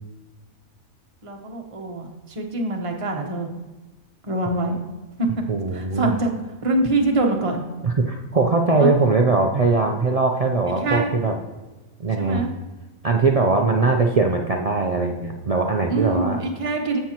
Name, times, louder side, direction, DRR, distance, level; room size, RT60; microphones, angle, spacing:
voice 1, 1.2-3.5 4.2-4.8 5.2-5.3 5.7-6.3 6.6-7.6 8.8-8.9 10.7-11.1 12.2-12.5 15.9-17.0, right 2 dB, 25° right, 2 dB, 1.0 m, -24 dB
voice 2, 5.5-6.1 7.8-11.4 12.0-12.5 13.0-16.4, right 3 dB, 55° right, 2 dB, 0.4 m, -20 dB
15.0 x 5.8 x 2.9 m, 1.2 s
omnidirectional pair, 1.4 m